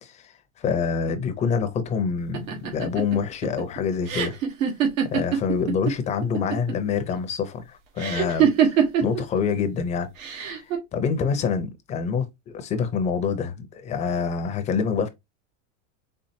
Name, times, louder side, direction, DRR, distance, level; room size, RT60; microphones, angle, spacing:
voice 1, 0.0-4.3 5.0-10.1 10.4-15.1, left 6 dB, 20° left, 0.5 m, -26 dB
sound 1, 2.3-5.9 6.2-6.9 8.0-9.2 10.2-10.8, right 8 dB, 90° right, 1.5 m, -23 dB
4.3 x 3.4 x 2.7 m
supercardioid pair, 150°, 39 cm